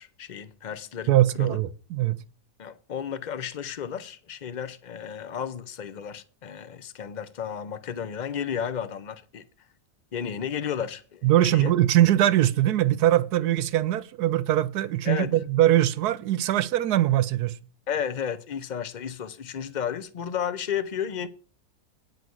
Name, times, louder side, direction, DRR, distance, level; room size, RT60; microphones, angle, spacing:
voice 1, 0.0-1.6 2.6-9.5 10.1-11.3 11.5-11.7 15.0-15.3 17.9-21.3, left 8 dB, 60° left, 0.4 m, -33 dB
voice 2, 1.1-2.2 11.2-17.6, right 13 dB, 80° right, 1.2 m, -22 dB
9.5 x 4.9 x 7.8 m
omnidirectional pair, 1.7 m